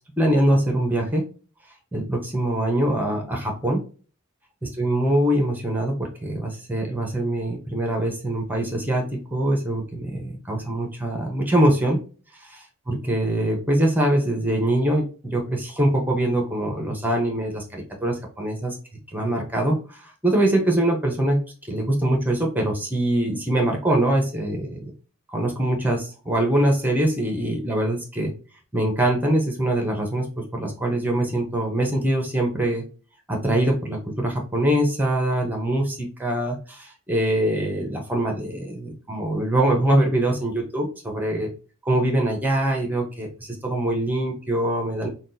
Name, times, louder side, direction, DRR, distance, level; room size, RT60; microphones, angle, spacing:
voice 1, 0.2-1.3 1.9-3.8 4.6-12.0 12.4-18.8 19.1-21.4 21.7-24.9 25.3-28.3 28.7-32.8 33.3-41.5 41.8-45.1, right 1 dB, 10° right, 1 dB, 0.8 m, -23 dB
5.9 x 2.3 x 2.6 m, 0.37 s
head